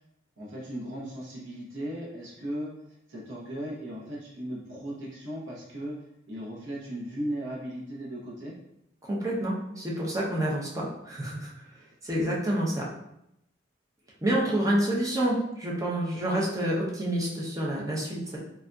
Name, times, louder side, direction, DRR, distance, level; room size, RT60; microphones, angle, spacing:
voice 1, 0.4-2.7 3.1-8.6 14.3-14.5, right 1 dB, 65° right, -6 dB, 0.9 m, -37 dB
voice 2, 9.0-11.6 12.0-12.9 14.2-18.4, right 1 dB, 15° right, -4 dB, 0.6 m, -28 dB
3.4 x 2.6 x 2.3 m, 0.79 s
head